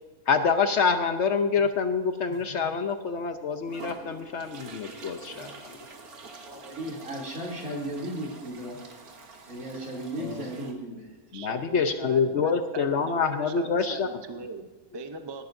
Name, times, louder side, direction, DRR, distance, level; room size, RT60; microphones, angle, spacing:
voice 1, 0.3-5.7 10.2-10.5 11.3-14.1, left 5 dB, 60° left, 8 dB, 0.9 m, -26 dB
sound 1, 2.3-2.5 3.0-3.1 3.7-10.7, right 3 dB, 80° right, 1.9 m, -46 dB
voice 2, 6.4-8.9 9.4-11.1, right 1 dB, 65° right, -3 dB, 3.3 m, -35 dB
voice 3, 11.3-15.4, right 3 dB, 30° right, 6 dB, 0.5 m, -40 dB
19.0 x 11.5 x 2.6 m, 1.2 s
omnidirectional pair, 1.5 m